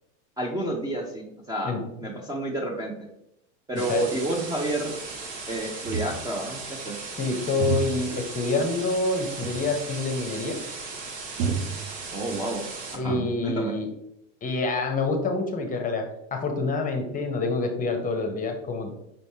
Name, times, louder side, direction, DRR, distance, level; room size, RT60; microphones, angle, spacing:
voice 1, 0.4-1.7 2.0-2.9 3.7-5.0 5.5-7.1 12.1-12.7 12.9-13.7, right 1 dB, 10° right, -1 dB, 0.5 m, -30 dB
sound 1, 3.8-13.0, right 4 dB, 65° right, 1.2 m, -37 dB
sound 2, 5.8-6.5 7.6-8.2 9.4-9.8 10.1-10.2 11.4-12.4 12.8-13.6, right 4 dB, 90° right, 0.6 m, -31 dB
voice 2, 7.2-10.6 12.9-13.9 14.4-16.0 16.3-18.9, left 3 dB, 20° left, 5 dB, 0.7 m, -27 dB
5.3 x 3.2 x 2.7 m, 0.81 s
hypercardioid pair, 110°, 37 cm